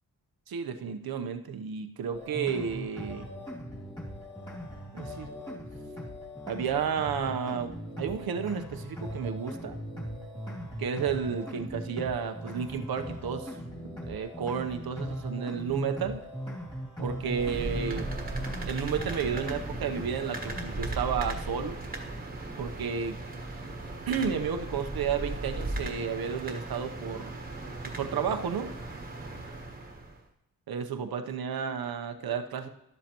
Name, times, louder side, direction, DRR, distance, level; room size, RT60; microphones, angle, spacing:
voice 1, 0.5-3.3 4.9-5.3 6.5-9.8 10.8-13.5 13.8-16.2 17.0-18.1 18.7-21.8 22.6-23.2 24.1-27.3 28.0-28.7 30.7-32.7, right 7 dB, 85° right, 7 dB, 0.9 m, -32 dB
sound 1, 2.1-21.0, equal, 15° left, 2.5 m, -39 dB
sound 2, 17.2-30.2, right 2 dB, 25° right, 1.3 m, -37 dB
12.5 x 12.0 x 3.0 m, 0.84 s
wide cardioid pair, 180°, 35 cm